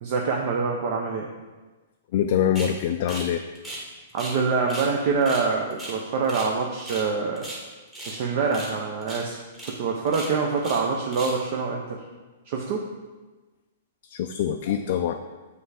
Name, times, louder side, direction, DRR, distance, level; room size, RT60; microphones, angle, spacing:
voice 1, 0.0-1.3 4.1-7.5 8.1-9.4 9.6-12.0 12.5-12.8, right 4 dB, 45° right, 0 dB, 0.7 m, -25 dB
voice 2, 2.1-3.4 14.1-15.2, left 9 dB, 50° left, 5 dB, 0.3 m, -24 dB
sound 1, 2.5-2.7 3.1-3.3 3.5-4.4 4.7-4.9 5.2-6.5 6.8-7.1 7.3-8.2 8.5-8.8 9.0-9.2 9.5-9.7 10.1-10.8 11.1-11.4, right 1 dB, 10° right, 1.4 m, -37 dB
7.1 x 3.3 x 4.9 m, 1.2 s
hypercardioid pair, 155°, 0 cm